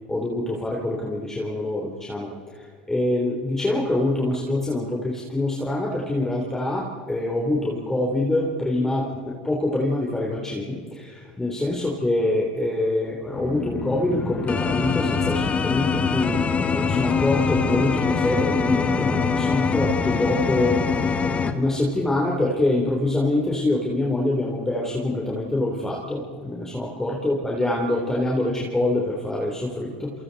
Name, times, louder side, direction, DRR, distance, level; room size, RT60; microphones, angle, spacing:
voice 1, 0.1-16.4 16.7-21.1 21.5-30.1, left 2 dB, 10° left, -2 dB, 3.7 m, -25 dB
sound 1, 13.3-21.5, left 5 dB, 30° left, 1.9 m, -23 dB
29.0 x 28.0 x 4.2 m, 2.2 s
supercardioid pair, 105°, 5 cm